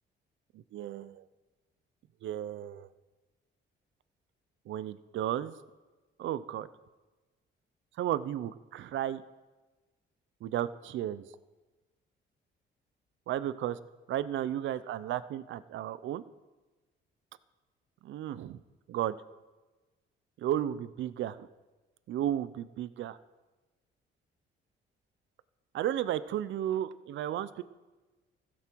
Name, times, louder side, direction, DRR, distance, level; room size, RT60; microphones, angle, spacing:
voice 1, 0.7-1.2 2.2-2.9 4.7-5.5 6.2-6.7 8.0-9.2 10.4-11.2 13.3-13.8 14.1-16.2 18.0-18.6 18.9-19.2 20.4-21.5 22.1-23.2 25.7-27.6, right 11 dB, 75° right, 15 dB, 0.6 m, -33 dB
15.0 x 13.5 x 4.6 m, 1.2 s
cardioid pair, 90°, 20 cm